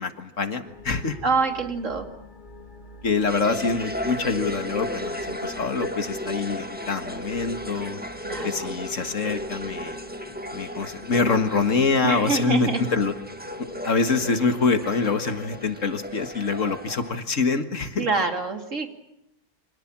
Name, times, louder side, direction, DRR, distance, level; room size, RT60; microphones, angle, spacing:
voice 1, 0.0-1.2 3.0-8.0 8.4-10.0 10.5-13.1 13.6-18.1, left 4 dB, 60° left, 9 dB, 2.0 m, -25 dB
sound 1, 0.6-15.9, left 3 dB, 30° left, 3.2 m, -46 dB
voice 2, 1.2-2.1 8.2-8.7 12.0-12.8 18.0-18.9, right 4 dB, 55° right, 5 dB, 3.1 m, -26 dB
sound 2, 3.3-17.2, equal, 5° right, 1.7 m, -34 dB
29.0 x 26.0 x 7.4 m, 0.81 s
omnidirectional pair, 1.5 m